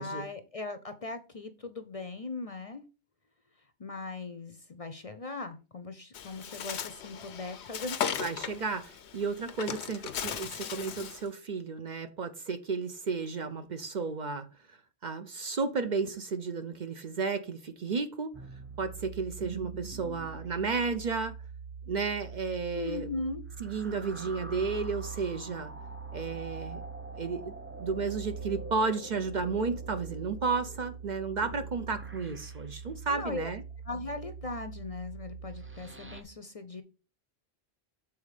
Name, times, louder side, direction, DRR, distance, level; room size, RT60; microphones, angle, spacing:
voice 1, 0.0-2.8 3.8-8.2 22.7-23.4 33.1-33.5 33.8-36.8, left 3 dB, 40° left, 0.6 m, -39 dB
Bird, 6.1-11.3, left 8 dB, 85° left, 1.0 m, -37 dB
voice 2, 8.2-14.5 15.0-18.4 18.8-21.4 21.9-23.1 23.6-25.7 26.1-26.8 27.1-33.6, right 4 dB, 50° right, 0.7 m, -33 dB
sound 1, 18.3-36.2, right 5 dB, 15° right, 0.5 m, -43 dB
7.1 x 4.1 x 4.8 m
omnidirectional pair, 1.1 m